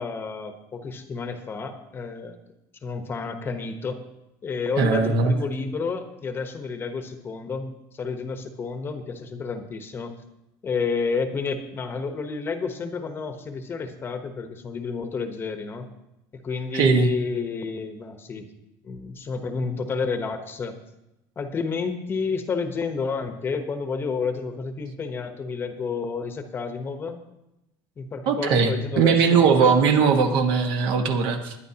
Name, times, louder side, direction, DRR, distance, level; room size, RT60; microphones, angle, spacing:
voice 1, 0.0-2.4 2.8-4.0 4.4-10.1 10.6-15.9 16.4-18.5 18.8-20.8 21.4-27.2 28.0-29.9, left 4 dB, 25° left, 7 dB, 1.0 m, -30 dB
voice 2, 4.8-5.3 16.7-17.1 28.2-31.5, right 5 dB, 60° right, 5 dB, 1.5 m, -20 dB
21.0 x 10.0 x 2.9 m, 0.91 s
cardioid pair, 150°, 9 cm